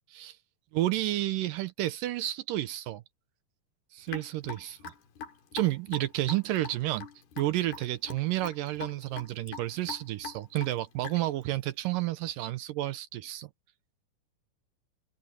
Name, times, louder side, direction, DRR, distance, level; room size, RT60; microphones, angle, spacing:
voice 1, 0.7-3.0 3.9-4.9 5.5-7.1 7.4-13.5, right 15 dB, 75° right, 2.2 m, -31 dB
Raindrop / Drip, 4.1-11.4, left 6 dB, 80° left, 4.5 m, -42 dB
omnidirectional pair, 4.3 m